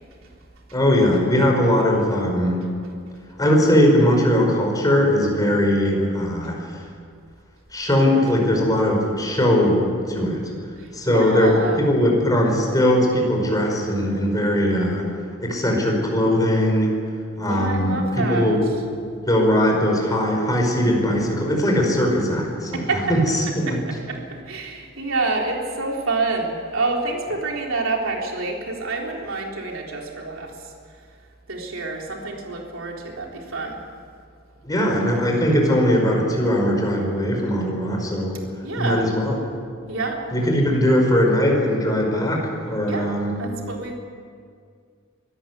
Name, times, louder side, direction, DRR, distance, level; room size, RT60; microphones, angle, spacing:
voice 1, 0.7-2.6 3.4-6.6 7.7-9.8 10.1-10.4 10.9-15.1 15.4-16.9 17.4-18.6 19.2-22.8 23.1-23.7 34.6-38.4 38.8-39.4 40.3-43.4, equal, 20° left, 0 dB, 5.2 m, -20 dB
voice 2, 10.7-11.9 17.4-18.5 22.7-23.2 23.7-30.7 31.5-33.8 38.6-39.1 39.9-40.2 42.9-43.1 43.4-43.9, right 3 dB, 70° right, 0 dB, 3.8 m, -27 dB
24.0 x 14.0 x 9.8 m, 2.2 s
head